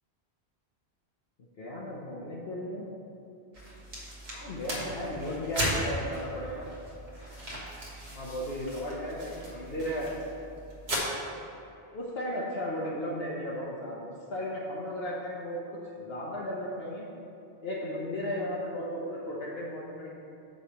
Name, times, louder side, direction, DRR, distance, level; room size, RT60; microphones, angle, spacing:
voice 1, 1.6-2.9 4.3-6.7 8.1-10.1 11.9-15.6 16.0-17.1 17.6-20.1, equal, 70° left, -5 dB, 1.1 m, -35 dB
sound 1, 3.5-11.0, equal, 75° right, 1.7 m, -37 dB
9.1 x 3.2 x 6.6 m, 2.8 s
omnidirectional pair, 1.1 m